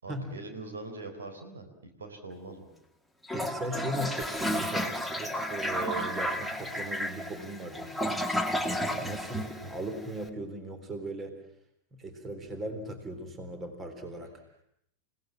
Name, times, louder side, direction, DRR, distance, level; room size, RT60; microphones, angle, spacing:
voice 1, 0.0-2.7 8.9-9.1, right 3 dB, 70° right, 6 dB, 4.1 m, -43 dB
Toilet flush, 3.2-10.2, equal, ahead, 2.0 m, -32 dB
voice 2, 3.3-8.4 8.6-11.4 11.9-14.4, right 1 dB, 20° right, 8 dB, 3.6 m, -38 dB
29.0 x 18.0 x 7.5 m, 0.73 s
figure-of-eight pair, 90°, 0 cm